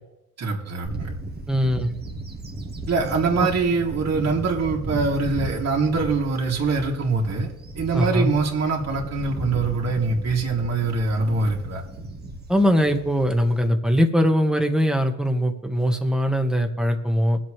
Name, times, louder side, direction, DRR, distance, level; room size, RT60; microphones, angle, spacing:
voice 1, 0.4-1.1 2.9-7.5 7.8-11.8, right 4 dB, 55° right, -2 dB, 2.9 m, -23 dB
Bird / Wind, 0.8-13.6, right 2 dB, 35° right, 1.8 m, -35 dB
voice 2, 1.5-1.9 3.4-3.5 7.9-8.3 12.5-17.4, equal, ahead, 4 dB, 1.6 m, -21 dB
22.0 x 7.7 x 3.4 m, 0.88 s
cardioid pair, 90°, 30 cm